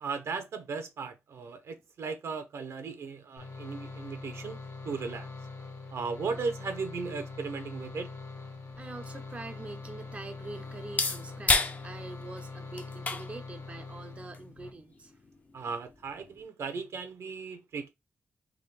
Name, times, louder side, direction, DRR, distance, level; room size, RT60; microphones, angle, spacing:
voice 1, 0.0-5.3 5.9-8.1 15.5-17.9, right 4 dB, 70° right, 0.8 m, -36 dB
sound 1, 3.4-14.7, left 3 dB, 65° left, 1.1 m, -43 dB
voice 2, 5.6-6.0 8.8-15.2, right 2 dB, 25° right, 0.5 m, -45 dB
sound 2, 8.5-16.5, left 3 dB, 30° left, 0.5 m, -35 dB
3.7 x 2.4 x 3.3 m
cardioid pair, 95°, 5 cm